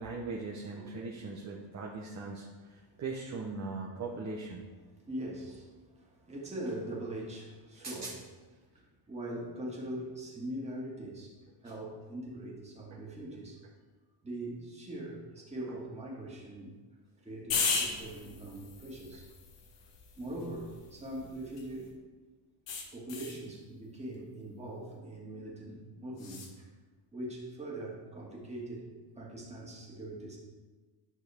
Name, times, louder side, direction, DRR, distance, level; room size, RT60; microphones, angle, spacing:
voice 1, 0.0-4.7 7.8-8.1, right 3 dB, 35° right, -3 dB, 1.0 m, -40 dB
voice 2, 5.1-8.2 8.7-13.6 14.2-16.7 17.2-19.3 20.2-21.9 22.9-26.7 27.1-28.9 29.2-30.4, right 1 dB, 15° right, -4 dB, 2.1 m, -42 dB
sound 1, 17.5-21.9 22.7-23.4 26.2-26.5, left 5 dB, 60° left, 1.5 m, -37 dB
11.0 x 6.2 x 3.6 m, 1.4 s
cardioid pair, 140°, 49 cm